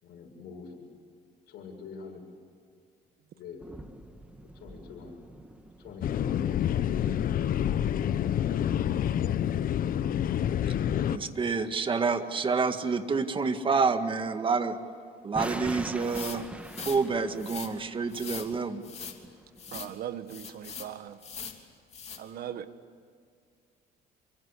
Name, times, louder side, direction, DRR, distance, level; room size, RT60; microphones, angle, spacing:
voice 1, 0.0-0.8 1.5-2.2 3.3-3.6 4.6-5.1 5.8-7.2, left 5 dB, 70° left, 1 dB, 7.5 m, -44 dB
sound 1, 3.6-9.8 15.3-20.0, right 1 dB, 5° right, 1.7 m, -45 dB
sound 2, 6.0-11.2, left 10 dB, 55° left, 1.0 m, -27 dB
voice 2, 11.1-14.8 15.2-16.4 16.9-18.8, right 4 dB, 30° right, 8 dB, 2.0 m, -28 dB
sound 3, 16.0-17.0 17.4-17.7 18.1-18.5 18.8-19.2 19.6-19.9 20.3-20.9 21.2-21.6 21.9-22.2, left 6 dB, 40° left, 3.1 m, -41 dB
voice 3, 19.7-21.2 22.2-22.7, right 10 dB, 60° right, 11 dB, 1.6 m, -39 dB
28.0 x 24.5 x 8.5 m, 2.2 s
cardioid pair, 110°, 17 cm